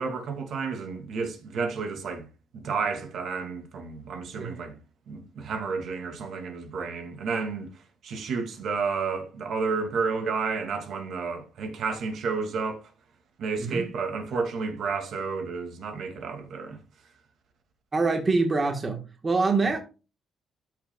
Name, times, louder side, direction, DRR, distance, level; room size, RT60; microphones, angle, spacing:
voice 1, 0.0-2.3 2.5-4.8 5.1-7.7 8.0-12.8 13.4-16.8, right 5 dB, 60° right, 2.0 m, -31 dB
voice 2, 17.9-19.8, right 3 dB, 25° right, 1.3 m, -25 dB
13.0 x 6.6 x 2.3 m
cardioid pair, 155°, 0 cm